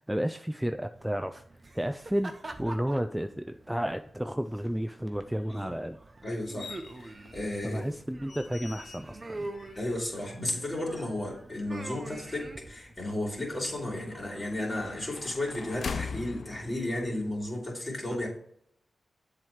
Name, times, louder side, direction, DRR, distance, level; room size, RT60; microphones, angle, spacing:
voice 1, 0.1-1.4 1.7-2.3 2.6-6.0 7.6-9.5, equal, 5° right, 8 dB, 0.4 m, -32 dB
sound 1, 0.9-16.6, right 2 dB, 35° right, 0.8 m, -46 dB
voice 2, 6.2-6.7 7.0-7.8 9.8-18.3, left 1 dB, 30° left, -1 dB, 2.9 m, -33 dB
sound 2, 6.6-17.5, left 5 dB, 65° left, 0.5 m, -44 dB
7.5 x 3.2 x 5.6 m, 0.67 s
cardioid pair, 55°, 0 cm